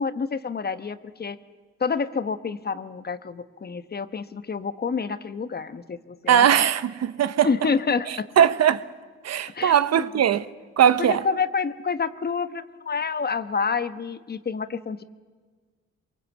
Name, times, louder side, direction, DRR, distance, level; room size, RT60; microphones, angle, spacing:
voice 1, 0.0-1.4 1.8-6.7 7.4-8.3 9.5-10.1 11.0-15.0, left 5 dB, 30° left, 1.1 m, -28 dB
voice 2, 6.3-7.5 8.1-8.8 9.2-10.5 10.8-11.2, right 9 dB, 55° right, 0.9 m, -20 dB
23.5 x 22.5 x 8.3 m
cardioid pair, 90°, 30 cm